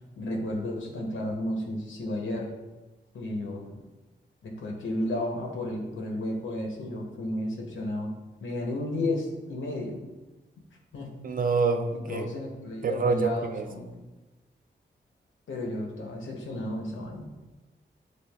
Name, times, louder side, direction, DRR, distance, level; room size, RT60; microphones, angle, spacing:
voice 1, 0.2-2.5 3.1-3.7 4.4-8.1 8.4-10.0 10.9-11.1 11.9-14.0 15.5-17.3, left 1 dB, 90° left, 0 dB, 0.7 m, -33 dB
voice 2, 11.2-12.3 12.8-13.6, right 4 dB, 45° right, 7 dB, 0.4 m, -26 dB
6.4 x 2.5 x 2.3 m, 1.1 s
cardioid pair, 70°, 19 cm